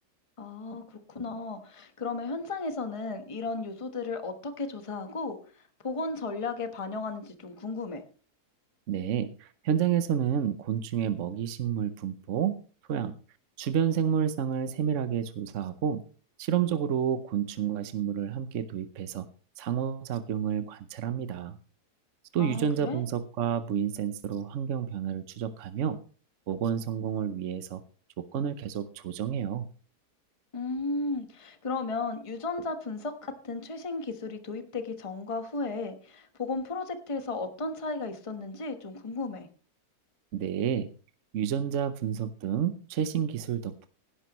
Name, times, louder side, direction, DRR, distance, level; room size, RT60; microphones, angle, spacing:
voice 1, 0.4-8.0 22.4-23.0 30.5-39.5, left 3 dB, 20° left, 8 dB, 1.2 m, -34 dB
voice 2, 8.9-12.6 12.9-13.1 13.6-16.0 16.4-19.3 19.6-21.6 22.3-26.0 26.5-27.8 28.2-29.7 40.3-40.9 41.3-43.9, right 8 dB, 60° right, 12 dB, 1.0 m, -30 dB
16.5 x 11.5 x 3.0 m, 0.38 s
omnidirectional pair, 1.7 m